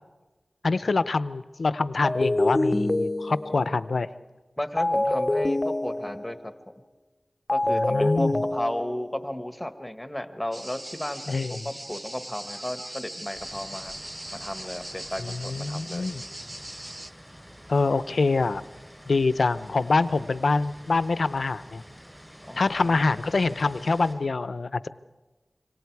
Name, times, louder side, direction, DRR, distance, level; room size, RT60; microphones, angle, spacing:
voice 1, 0.6-4.1 7.7-8.3 11.3-11.7 15.2-16.2 17.7-18.6 19.1-21.8 22.6-24.9, left 3 dB, 85° left, 15 dB, 0.6 m, -25 dB
sound 1, 2.0-3.7 4.8-6.5 7.5-9.2, left 1 dB, 30° left, 0.8 m, -26 dB
voice 2, 4.6-6.5 7.5-13.9 14.3-16.1 22.5-23.1, left 1 dB, 15° left, 9 dB, 1.4 m, -34 dB
sound 2, 10.5-17.1, right 1 dB, 30° right, 0.8 m, -40 dB
sound 3, 13.3-24.1, equal, 5° right, 7.7 m, -48 dB
26.5 x 25.0 x 4.7 m, 1.2 s
wide cardioid pair, 60°, 0 cm